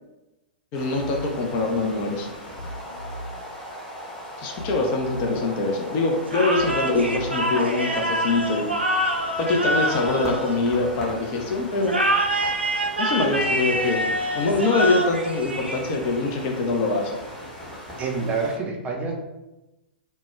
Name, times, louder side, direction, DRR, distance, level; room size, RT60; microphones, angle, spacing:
voice 1, 0.7-2.3 4.4-8.7 9.4-12.0 13.0-17.2, left 3 dB, 35° left, 2 dB, 0.4 m, -24 dB
sound 1, 0.7-18.6, equal, 10° left, 0.8 m, -39 dB
sound 2, 1.0-1.4 2.6-3.4 4.6-5.4 6.6-7.4, equal, 70° left, 0.8 m, -37 dB
sound 3, 6.3-11.1 11.8-16.2, right 1 dB, 90° right, 0.4 m, -26 dB
voice 2, 18.0-19.1, right 4 dB, 25° right, 0 dB, 0.4 m, -27 dB
2.1 x 2.0 x 3.1 m, 1.0 s
figure-of-eight pair, 105°, 6 cm